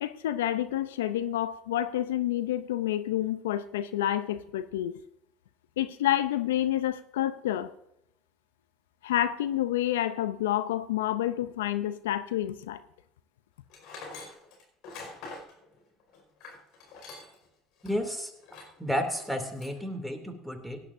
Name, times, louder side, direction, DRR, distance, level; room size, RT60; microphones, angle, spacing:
voice 1, 0.0-4.9 5.8-7.7 9.0-12.8, left 12 dB, 80° left, 14 dB, 0.5 m, -29 dB
Tools, 13.7-17.5 17.8-17.9 18.4-18.8 19.2-19.8, left 3 dB, 65° left, 5.0 m, -45 dB
voice 2, 17.8-18.3 18.8-20.8, equal, ahead, 5 dB, 2.6 m, -32 dB
18.0 x 11.5 x 2.6 m, 0.80 s
hypercardioid pair, 70°, 0 cm